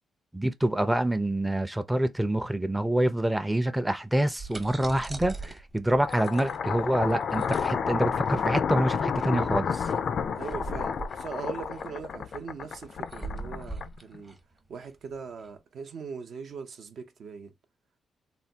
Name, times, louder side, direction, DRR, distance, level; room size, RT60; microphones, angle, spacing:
voice 1, 0.3-9.9, right 1 dB, 10° right, 0.4 m, -26 dB
sound 1, 4.1-15.5, right 3 dB, 25° right, 0.8 m, -42 dB
sound 2, 6.0-14.2, left 6 dB, 60° left, 0.3 m, -30 dB
voice 2, 10.3-14.4 14.7-17.5, right 6 dB, 65° right, 0.6 m, -41 dB
3.3 x 2.2 x 2.7 m
cardioid pair, 95°, 0 cm